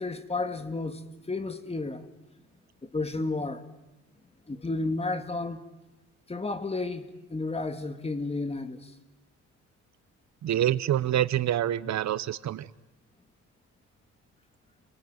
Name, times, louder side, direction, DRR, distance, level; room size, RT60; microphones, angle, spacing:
voice 1, 0.0-2.1 2.8-3.6 4.5-5.6 6.3-8.9, left 3 dB, 20° left, 2.1 m, -32 dB
voice 2, 10.4-12.7, right 11 dB, 65° right, 0.9 m, -26 dB
30.0 x 19.5 x 9.4 m
cardioid pair, 90°, 30 cm